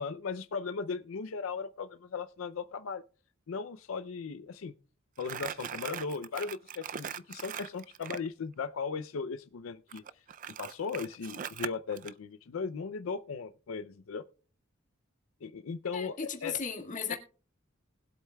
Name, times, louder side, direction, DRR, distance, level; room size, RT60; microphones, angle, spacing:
voice 1, 0.0-3.0 3.5-4.7 5.2-10.0 10.6-14.2 15.4-16.6 17.1-17.2, left 5 dB, 85° left, 0.5 m, -37 dB
Crumpling crinkling, 5.2-8.3 9.9-12.1, right 8 dB, 40° right, 0.4 m, -40 dB
voice 2, 15.9-17.2, left 6 dB, 40° left, 1.8 m, -36 dB
20.0 x 8.0 x 2.2 m
head